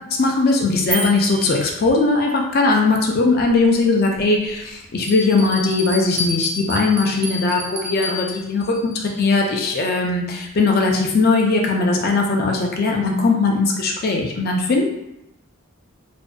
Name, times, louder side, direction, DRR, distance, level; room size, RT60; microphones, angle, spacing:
voice 1, 0.1-14.9, left 3 dB, 45° left, 1 dB, 0.4 m, -19 dB
sound 1, 0.9-2.4, right 3 dB, 75° right, 0.8 m, -30 dB
Bell, 4.2-4.3 5.0-9.6, left 2 dB, 30° right, 0.5 m, -30 dB
2.5 x 2.1 x 2.3 m, 0.85 s
head